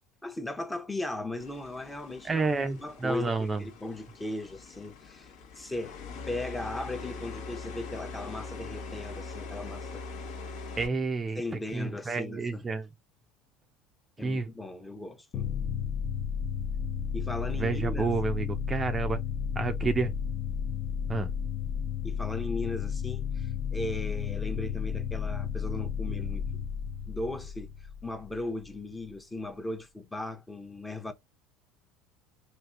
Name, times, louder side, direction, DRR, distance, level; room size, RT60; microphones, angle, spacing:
voice 1, 0.2-5.3 5.5-6.0 6.2-10.0 11.3-12.6 14.2-15.5 17.1-18.1 22.0-26.6 27.1-31.1, left 2 dB, 10° left, 0.7 m, -37 dB
sound 1, 1.4-10.9, left 4 dB, 70° left, 1.0 m, -42 dB
voice 2, 2.2-3.6 10.8-11.4 11.7-12.9 14.2-14.5 17.6-19.2 19.6-20.1 21.1-21.3, right 4 dB, 25° right, 0.4 m, -29 dB
sound 2, 15.3-28.8, left 7 dB, 50° left, 0.6 m, -33 dB
3.4 x 2.4 x 2.5 m
supercardioid pair, 95°, 0 cm